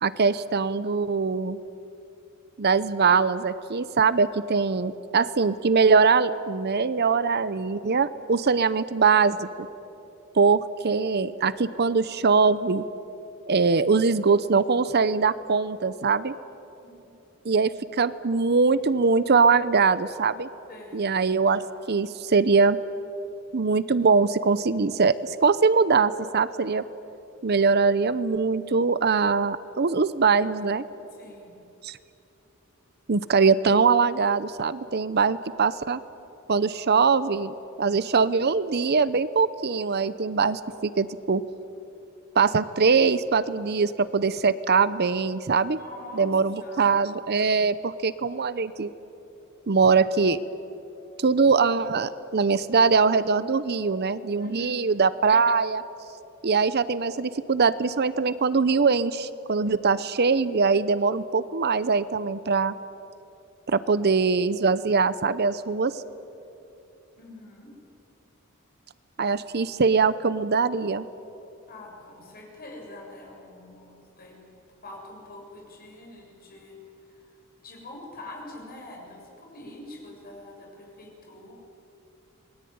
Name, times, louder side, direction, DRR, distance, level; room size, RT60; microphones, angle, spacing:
voice 1, 0.0-1.6 2.6-9.7 10.3-12.8 13.5-16.4 17.4-20.5 20.9-22.8 23.5-26.8 27.4-30.8 31.8-32.0 33.1-36.0 36.5-41.4 42.3-45.8 46.1-48.9 49.7-50.4 51.2-55.8 56.4-62.8 63.7-66.0 69.2-71.1, right 4 dB, 50° right, 15 dB, 0.7 m, -22 dB
voice 2, 20.7-21.2 31.1-31.6 45.6-47.0 54.4-54.8 67.2-67.7 71.7-74.4 74.8-76.8 77.1-77.3 77.6-81.5, left 1 dB, 45° left, 0 dB, 6.9 m, -45 dB
27.5 x 20.5 x 9.4 m, 2.9 s
head